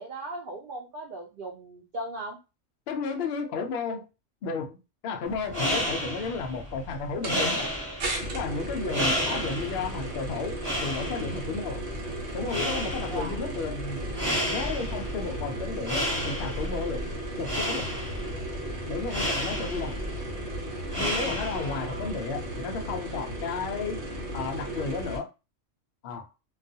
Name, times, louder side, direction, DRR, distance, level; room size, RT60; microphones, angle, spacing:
voice 1, 0.0-2.4 8.8-9.1 13.1-13.4 21.5-22.2, right 1 dB, 85° right, 0.4 m, -38 dB
voice 2, 2.9-4.0 4.4-7.7 8.3-11.8 12.3-14.0 14.5-17.1 17.4-18.0 18.9-20.0 21.0-24.0 24.3-25.3 26.0-26.3, left 4 dB, 70° left, 0.6 m, -33 dB
sound 1, 5.3-21.9, equal, 20° right, 1.1 m, -32 dB
sound 2, 7.2-7.4 8.0-25.2, right 1 dB, 60° right, 1.0 m, -35 dB
2.4 x 2.2 x 2.6 m
omnidirectional pair, 1.5 m